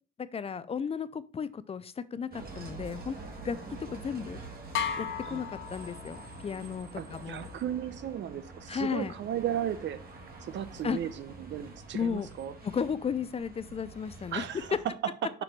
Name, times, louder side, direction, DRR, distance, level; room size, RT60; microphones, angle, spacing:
voice 1, 0.2-3.2 3.4-4.4 5.0-6.2 6.4-7.5 8.7-9.1 10.8-11.0 11.9-12.3 12.6-14.8, left 6 dB, 30° left, 15 dB, 0.4 m, -34 dB
Bus, 2.3-14.8, right 2 dB, 50° right, 1.5 m, -46 dB
sound 1, 4.7-6.5, left 7 dB, 75° left, 0.7 m, -35 dB
voice 2, 7.0-10.0 10.4-12.5 14.3-14.7 15.2-15.3, right 10 dB, 65° right, 13 dB, 0.7 m, -35 dB
6.0 x 3.8 x 4.6 m, 0.37 s
cardioid pair, 90°, 20 cm